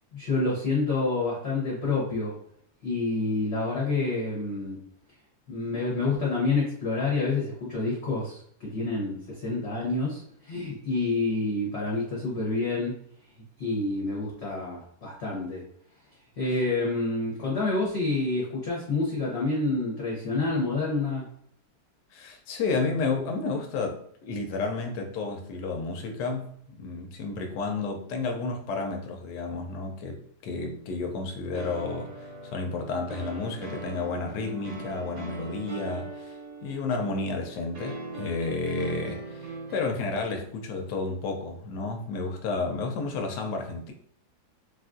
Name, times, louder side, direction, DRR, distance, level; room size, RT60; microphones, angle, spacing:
voice 1, 0.1-2.3 2.8-4.8 5.5-12.9 13.6-15.6 16.4-21.3, left 3 dB, 50° left, -5 dB, 1.0 m, -28 dB
voice 2, 22.1-36.3 36.6-43.9, left 3 dB, 85° left, 2 dB, 1.2 m, -31 dB
sound 1, 31.5-39.8, right 2 dB, 55° right, 0.9 m, -40 dB
3.4 x 2.4 x 2.4 m, 0.64 s
omnidirectional pair, 1.8 m